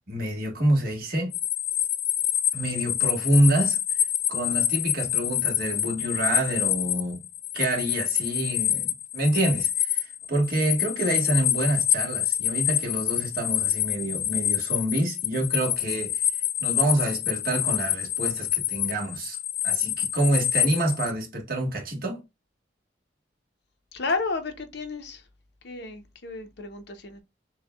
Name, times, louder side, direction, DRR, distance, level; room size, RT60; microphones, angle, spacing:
voice 1, 0.1-1.3 2.5-4.0 4.3-7.2 7.5-16.2 16.6-19.4 19.6-22.2, right 1 dB, 50° right, 1.3 m, -27 dB
sound 1, 1.3-21.1, left 11 dB, 40° left, 0.4 m, -27 dB
voice 2, 23.9-25.2 25.6-27.2, left 3 dB, 60° left, 0.7 m, -32 dB
6.3 x 2.3 x 2.3 m
head